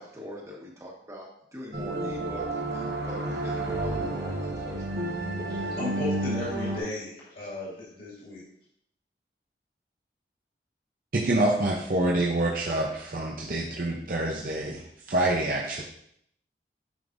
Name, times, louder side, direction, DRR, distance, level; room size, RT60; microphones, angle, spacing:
voice 1, 0.0-5.2, equal, 15° right, -2 dB, 1.4 m, -43 dB
sound 1, 1.7-6.8, right 2 dB, 70° right, 1.3 m, -31 dB
voice 2, 5.5-8.4, left 2 dB, 55° left, -8 dB, 2.3 m, -35 dB
voice 3, 11.1-15.8, right 1 dB, 50° right, -2 dB, 0.7 m, -26 dB
9.5 x 5.2 x 2.6 m, 0.71 s
head